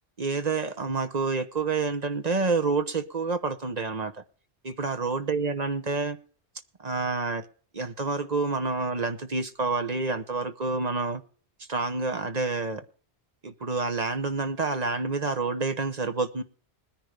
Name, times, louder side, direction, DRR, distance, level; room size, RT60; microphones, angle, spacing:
voice 1, 0.2-4.1 4.6-6.2 6.8-7.4 7.7-11.2 11.7-12.8 13.4-16.4, right 3 dB, 40° right, 1.0 m, -28 dB
20.0 x 10.5 x 3.3 m
omnidirectional pair, 1.1 m